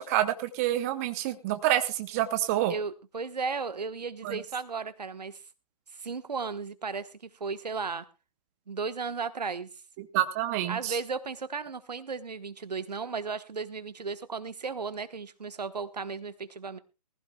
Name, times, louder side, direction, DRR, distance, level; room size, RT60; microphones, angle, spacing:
voice 1, 0.0-2.7 4.2-4.4 10.0-11.0, right 13 dB, 25° right, 10 dB, 0.7 m, -28 dB
voice 2, 2.7-5.4 5.9-8.0 8.7-9.7 10.7-16.8, right 5 dB, 75° right, 13 dB, 1.2 m, -35 dB
19.5 x 15.0 x 2.3 m, 0.28 s
figure-of-eight pair, 140°, 21 cm